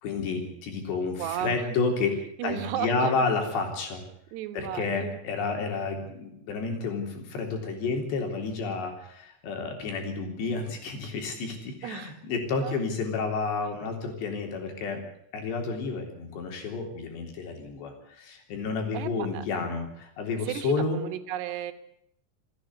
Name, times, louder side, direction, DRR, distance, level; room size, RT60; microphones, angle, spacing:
voice 1, 0.0-2.2 2.4-4.0 4.5-15.0 15.3-21.0, left 4 dB, 90° left, 3 dB, 5.8 m, -30 dB
voice 2, 1.2-1.6 2.4-3.2 4.3-5.1 11.8-12.1 12.6-12.8 18.9-19.4 20.5-21.7, right 11 dB, 80° right, 10 dB, 3.4 m, -34 dB
27.5 x 10.5 x 9.5 m, 0.72 s
omnidirectional pair, 4.8 m